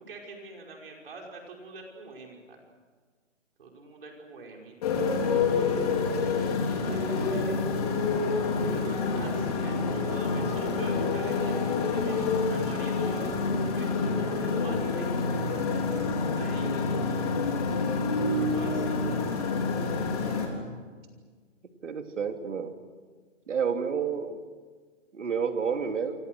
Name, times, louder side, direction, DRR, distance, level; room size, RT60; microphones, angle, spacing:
voice 1, 0.1-2.6 3.6-5.2 6.5-6.6 6.9-7.6 8.6-15.3 16.3-17.2 18.5-19.0, right 3 dB, 50° right, 0 dB, 5.4 m, -44 dB
Motorcycle, 4.8-20.5, left 4 dB, 30° left, 3.8 m, -27 dB
voice 2, 21.8-22.7 23.5-24.4 25.1-26.1, right 6 dB, 70° right, 5 dB, 3.1 m, -29 dB
29.5 x 25.0 x 6.4 m, 1.5 s
hypercardioid pair, 175°, 38 cm